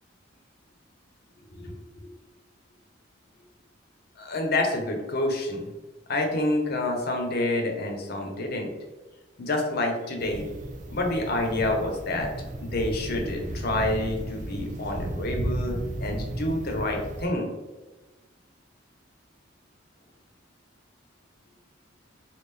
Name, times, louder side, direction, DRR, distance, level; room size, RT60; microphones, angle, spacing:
voice 1, 1.5-2.1 4.2-5.6 6.1-8.7 9.4-10.5 10.9-12.3 12.6-17.5, left 2 dB, 55° left, 2 dB, 0.7 m, -28 dB
sound 1, 10.2-17.3, right 1 dB, 40° right, 0.4 m, -34 dB
3.2 x 2.4 x 3.4 m, 1.2 s
head